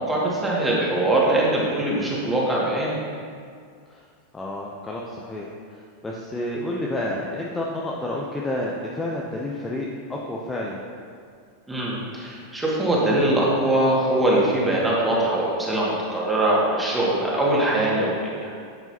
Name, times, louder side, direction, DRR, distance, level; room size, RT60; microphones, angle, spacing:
voice 1, 0.0-3.0 11.7-18.5, right 1 dB, 10° right, -5 dB, 2.2 m, -22 dB
voice 2, 4.3-10.8, left 1 dB, 10° left, -3 dB, 0.8 m, -30 dB
11.0 x 8.1 x 3.0 m, 2.2 s
figure-of-eight pair, 90°, 0 cm